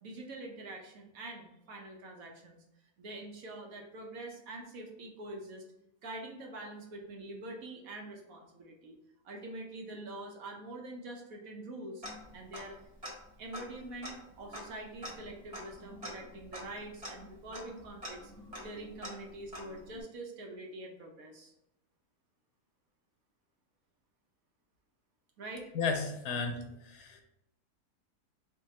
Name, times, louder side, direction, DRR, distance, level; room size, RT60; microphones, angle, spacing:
voice 1, 0.0-2.6 3.0-5.6 6.0-9.0 9.2-12.0 12.3-12.8 13.4-18.3 18.6-21.5 25.4-25.7 26.2-26.3, right 2 dB, 65° right, 1 dB, 1.1 m, -45 dB
Tick-tock, 12.0-12.8 13.0-13.1 13.5-20.0, equal, 25° right, 1.1 m, -46 dB
voice 2, 25.7-27.2, left 4 dB, 80° left, 4 dB, 1.2 m, -34 dB
3.7 x 3.3 x 4.1 m, 0.84 s
omnidirectional pair, 1.8 m